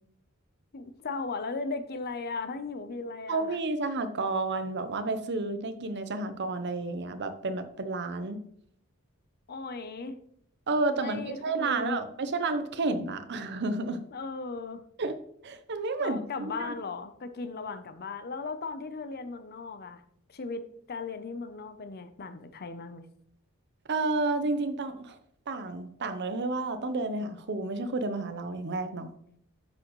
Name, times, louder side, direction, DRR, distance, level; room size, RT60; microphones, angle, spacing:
voice 1, 0.7-3.6 9.5-10.2 10.9-12.0 14.1-14.8 16.0-20.0 20.3-23.0, left 3 dB, 45° left, 10 dB, 0.7 m, -37 dB
voice 2, 3.3-8.4 10.7-14.0 15.0-15.2 15.4-16.2 16.6-16.7 23.9-25.2 25.5-29.1, right 3 dB, 55° right, 9 dB, 0.8 m, -31 dB
9.7 x 6.2 x 3.1 m, 0.67 s
head